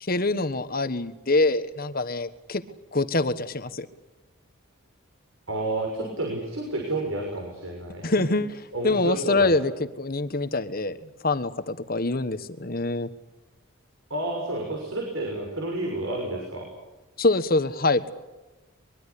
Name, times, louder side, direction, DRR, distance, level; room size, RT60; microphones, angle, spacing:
voice 1, 0.0-2.6 2.9-3.9 8.0-8.6 8.8-9.7 10.0-13.1 17.2-18.1, left 2 dB, 45° left, 11 dB, 1.4 m, -25 dB
voice 2, 5.5-8.3 8.7-9.5 14.1-16.7, right 2 dB, 70° right, 1 dB, 6.4 m, -30 dB
23.5 x 22.5 x 8.5 m, 1.1 s
head